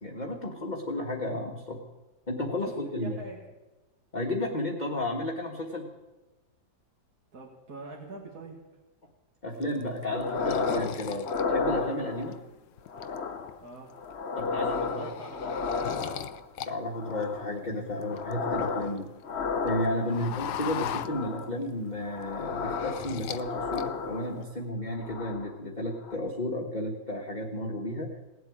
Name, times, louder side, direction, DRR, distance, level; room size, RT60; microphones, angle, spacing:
voice 1, 0.0-1.8 2.3-3.2 4.1-5.9 9.4-12.4 14.3-15.1 16.6-19.1 19.6-28.1, left 1 dB, 25° left, -1 dB, 1.6 m, -33 dB
voice 2, 2.8-3.5 7.3-8.6 13.6-13.9 14.7-16.3 20.0-20.2, right 2 dB, 55° right, -2 dB, 2.4 m, -45 dB
sound 1, 9.6-12.3 12.8-13.5 13.9-14.1 14.4-16.7 17.0-19.1 19.4-21.7 22.0-23.5 23.7-24.3, left 11 dB, 70° left, 1.1 m, -39 dB
sound 2, 10.1-10.9 11.2-12.4 12.9-13.6 13.9-16.5 16.9-17.6 17.9-18.9 19.2-20.3 20.9-21.5 22.0-24.5 24.9-25.5 25.9-26.2, left 4 dB, 40° left, 1.1 m, -32 dB
18.5 x 7.9 x 9.9 m, 1.1 s
omnidirectional pair, 2.0 m